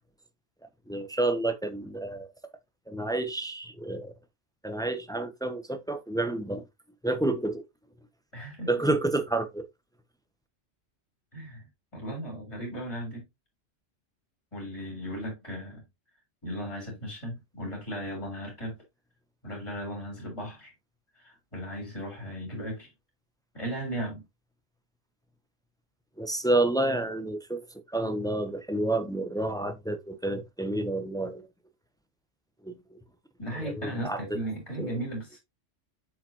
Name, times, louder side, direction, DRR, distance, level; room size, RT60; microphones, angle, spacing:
voice 1, 0.9-2.3 2.9-4.1 4.6-6.6 7.0-7.6 8.7-9.7 26.2-31.5 32.6-33.0 33.6-34.4 34.8-34.9, right 2 dB, 5° left, 0.5 m, -29 dB
voice 2, 8.3-8.7 11.3-11.7 11.9-13.2 14.5-15.8 16.4-18.8 19.4-20.7 21.1-22.9 23.5-24.2 33.4-35.4, equal, 25° left, 3.7 m, -36 dB
7.4 x 4.9 x 2.8 m
omnidirectional pair, 1.3 m